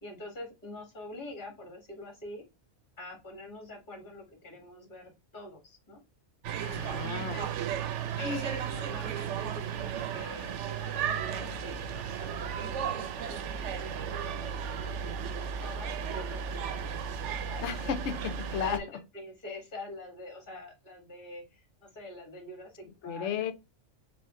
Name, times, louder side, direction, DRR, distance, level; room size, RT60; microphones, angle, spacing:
voice 1, 0.0-2.4 3.0-6.0 6.8-7.8 8.2-16.9 17.2-17.9 18.6-18.9 19.1-23.3, left 2 dB, 45° left, 1.8 m, -45 dB
sound 1, 6.4-18.8, right 7 dB, 80° right, 0.9 m, -34 dB
voice 2, 6.6-7.4 17.6-18.8 23.0-23.5, left 8 dB, 80° left, 0.9 m, -33 dB
5.1 x 2.4 x 3.6 m
omnidirectional pair, 1.2 m